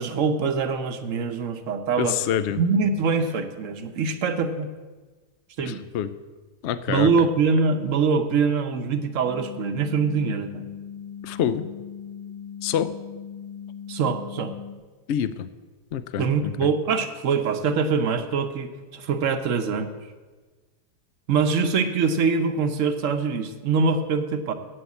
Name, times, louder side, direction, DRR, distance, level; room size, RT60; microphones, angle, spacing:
voice 1, 0.0-2.1 2.6-4.7 5.6-5.8 6.9-10.7 13.9-14.5 16.2-19.9 21.3-24.5, right 5 dB, 60° right, 8 dB, 1.0 m, -24 dB
voice 2, 2.0-2.6 5.6-6.1 6.6-7.3 11.2-11.6 12.6-12.9 15.1-15.5 15.9-16.7, left 9 dB, 75° left, 14 dB, 0.6 m, -26 dB
sound 1, 9.2-14.8, left 8 dB, 50° left, 1.2 m, -39 dB
8.1 x 7.8 x 8.3 m, 1.3 s
omnidirectional pair, 1.8 m